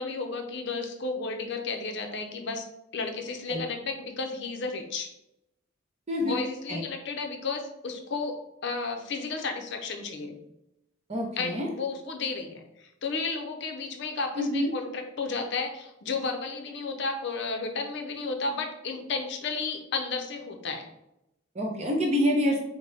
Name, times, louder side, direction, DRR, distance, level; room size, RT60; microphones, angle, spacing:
voice 1, 0.0-2.7 2.9-5.1 6.2-10.4 11.4-20.9, left 4 dB, 55° left, 4 dB, 0.6 m, -33 dB
voice 2, 6.1-6.4 6.7-6.8 11.1-11.7 14.4-14.7 21.5-22.6, left 1 dB, 30° right, 0 dB, 0.8 m, -26 dB
5.1 x 2.1 x 3.3 m, 0.87 s
head